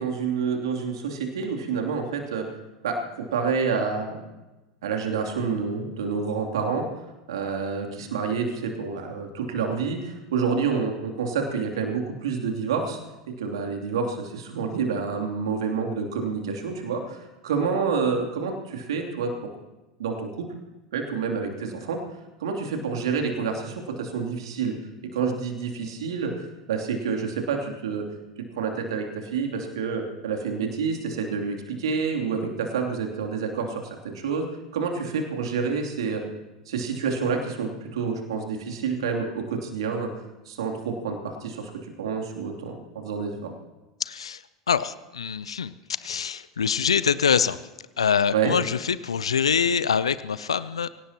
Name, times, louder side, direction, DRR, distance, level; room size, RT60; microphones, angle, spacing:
voice 1, 0.0-2.4 2.8-4.2 4.8-6.9 7.3-13.0 13.4-19.3 20.0-20.5 20.9-22.0 22.4-24.7 25.1-28.1 28.6-34.5 34.7-36.2 36.7-40.1 40.5-41.7 42.0-43.5 48.3-48.5, right 5 dB, 70° right, 2 dB, 2.9 m, -28 dB
voice 2, 44.0-45.7 46.0-47.6 48.0-50.9, left 7 dB, 80° left, 16 dB, 0.5 m, -24 dB
24.5 x 17.5 x 2.9 m, 1.1 s
figure-of-eight pair, 80°, 3 cm